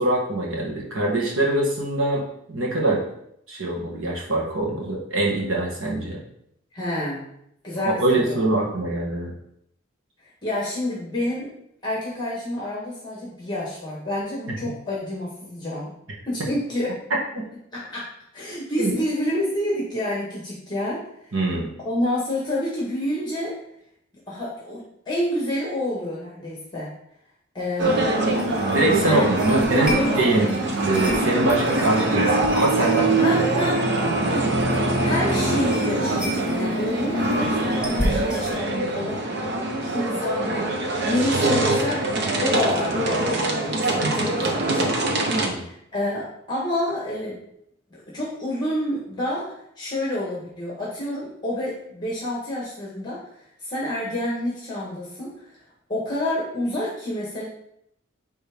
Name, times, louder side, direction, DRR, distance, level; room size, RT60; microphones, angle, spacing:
voice 1, 0.0-2.2 2.5-3.0 3.5-6.2 7.9-9.3 14.5-14.6 17.4-17.5 18.8-18.9 21.3-21.7 28.7-30.5 30.8-33.2 44.0-44.1 45.3-45.6, right 2 dB, 80° right, -2 dB, 1.7 m, -23 dB
voice 2, 6.7-7.2 7.6-8.4 10.4-11.5 11.8-15.9 16.2-16.9 17.7-21.3 21.8-23.6 24.3-26.9 27.5-28.1 29.0-30.4 33.2-33.8 34.2-34.5 35.0-39.3 39.8-40.7 41.0-42.1 42.4-45.0 45.4-47.4 47.9-55.6 55.9-57.5, left 1 dB, 20° left, -5 dB, 1.4 m, -28 dB
sound 1, 27.8-38.6, equal, 5° right, 1.0 m, -35 dB
sound 2, 27.8-45.5, right 2 dB, 55° right, 1.0 m, -23 dB
9.3 x 3.4 x 3.6 m, 0.75 s
head